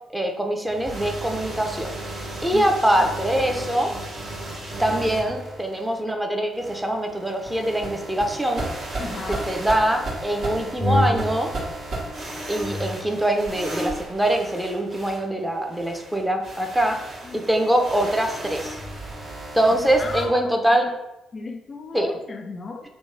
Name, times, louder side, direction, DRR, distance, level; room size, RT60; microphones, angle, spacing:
voice 1, 0.1-1.9 2.4-3.9 4.8-8.6 9.5-11.5 12.5-17.0 17.3-18.8 19.5-20.9 21.9-22.1, right 1 dB, 10° right, 3 dB, 0.5 m, -23 dB
sound 1, 0.7-6.0 6.5-20.2, equal, 60° right, 1.2 m, -32 dB
voice 2, 2.5-3.0 9.0-9.4 17.2-17.4 20.0-20.8 21.3-22.8, left 3 dB, 40° left, 4 dB, 0.3 m, -35 dB
2.9 x 2.1 x 3.5 m, 0.94 s
hypercardioid pair, 40°, 0 cm